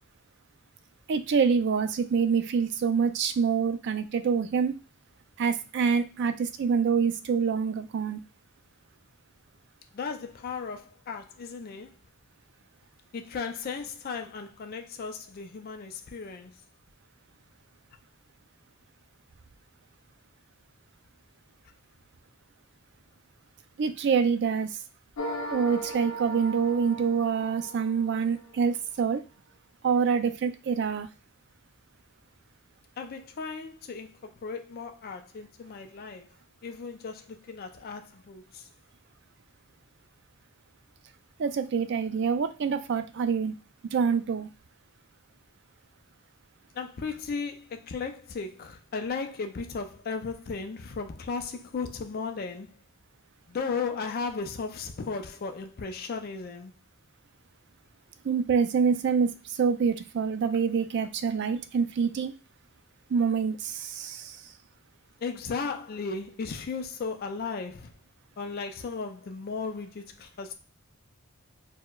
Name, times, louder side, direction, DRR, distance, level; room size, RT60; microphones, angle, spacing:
voice 1, 1.1-4.8 5.4-8.2 23.8-24.8 25.5-29.2 29.8-31.1 41.4-43.5 43.9-44.5 58.2-62.3 63.1-64.5, right 6 dB, 50° right, 0.3 m, -26 dB
voice 2, 9.9-12.0 13.1-16.6 33.0-36.3 36.6-38.7 46.7-52.8 53.5-56.7 65.2-68.0 68.4-70.5, left 5 dB, 45° left, 0.4 m, -36 dB
sound 1, 25.2-28.5, right 1 dB, 85° left, 0.6 m, -37 dB
4.3 x 2.1 x 2.2 m
head